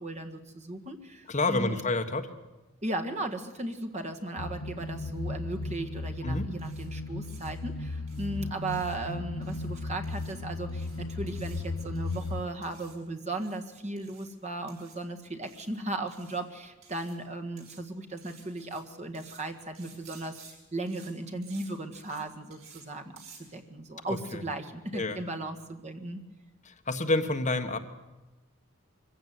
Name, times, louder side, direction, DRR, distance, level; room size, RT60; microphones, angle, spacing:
voice 1, 0.0-1.8 2.8-20.4 20.7-23.1 23.5-26.2, right 2 dB, 30° right, 6 dB, 1.7 m, -36 dB
voice 2, 1.3-2.3 6.2-6.5 24.3-24.4 24.9-25.2 26.6-27.8, left 2 dB, 35° left, 6 dB, 1.4 m, -28 dB
sound 1, 4.4-12.4, left 3 dB, 85° left, 0.9 m, -36 dB
sound 2, 6.6-6.9 7.2-7.5 8.1-8.3 8.7-9.0 9.4-9.7 10.0-10.3 10.7-11.0 11.3-11.6 11.9-12.3 12.6-13.0 13.3-13.6 14.0-14.3 14.7-15.0 15.4-15.7 16.1-16.4 16.8-17.2 17.6-17.8 18.2-18.8 19.1-19.4 19.7-20.5 20.9-21.1 21.4-21.7 21.9-22.2 22.5-22.8 23.2-23.4, right 6 dB, 80° right, 7.0 m, -54 dB
23.5 x 16.0 x 9.5 m, 1.1 s
head